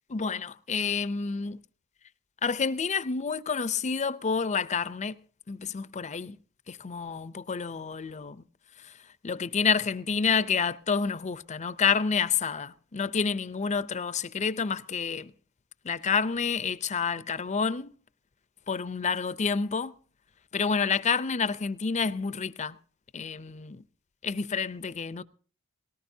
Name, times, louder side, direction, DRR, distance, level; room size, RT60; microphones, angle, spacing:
voice 1, 0.1-1.6 2.4-5.1 5.5-6.4 6.7-8.4 9.2-15.3 15.8-17.9 18.7-19.9 20.5-22.8 23.1-23.8 24.2-25.2, left 5 dB, 30° left, 0.5 m, -29 dB
19.0 x 18.0 x 2.7 m
head